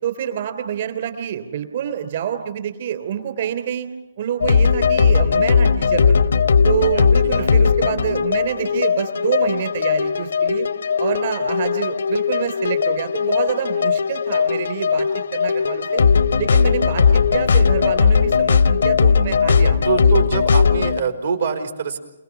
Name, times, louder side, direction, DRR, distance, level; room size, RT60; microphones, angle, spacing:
voice 1, 0.0-3.9 4.2-6.3 6.6-10.7 11.0-16.0 16.4-20.0, right 9 dB, 55° right, 9 dB, 3.1 m, -27 dB
sound 1, 4.4-21.0, left 6 dB, 75° left, 0.7 m, -18 dB
voice 2, 19.8-22.0, right 6 dB, 85° right, 5 dB, 4.3 m, -24 dB
28.5 x 19.5 x 6.0 m, 0.95 s
hypercardioid pair, 135°, 0 cm